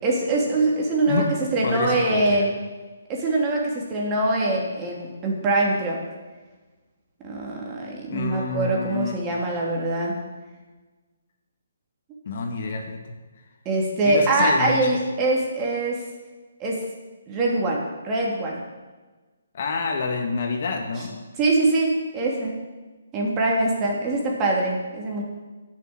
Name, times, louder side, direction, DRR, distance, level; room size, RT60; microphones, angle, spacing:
voice 1, 0.0-1.2 1.5-2.5 3.1-6.0 7.2-10.1 13.6-16.0 16.6-16.8 17.3-18.6 21.4-22.6 23.1-25.2, right 2 dB, 20° right, -2 dB, 3.1 m, -23 dB
voice 2, 1.1-2.5 8.1-9.2 12.3-13.0 14.0-14.9 19.5-21.1, left 4 dB, 50° left, 3 dB, 1.9 m, -28 dB
11.0 x 6.9 x 8.9 m, 1.3 s
figure-of-eight pair, 145°, 0 cm